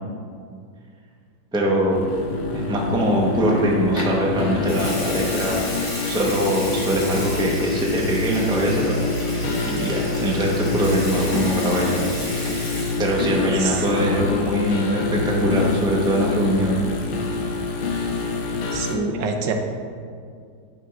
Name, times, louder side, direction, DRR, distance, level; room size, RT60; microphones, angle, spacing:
voice 1, 1.5-2.1 2.5-9.0 9.6-12.5 13.0-16.9, equal, 5° right, -3 dB, 0.7 m, -22 dB
sound 1, 1.9-18.9, left 3 dB, 75° left, 1.4 m, -26 dB
Water tap faucet / Sink (filling or washing) / Liquid, 4.0-4.2 4.6-13.4 13.7-14.0, left 1 dB, 20° left, 1.1 m, -33 dB
voice 2, 18.7-19.5, right 5 dB, 80° right, 4 dB, 1.4 m, -26 dB
9.2 x 3.6 x 6.0 m, 2.2 s
omnidirectional pair, 1.9 m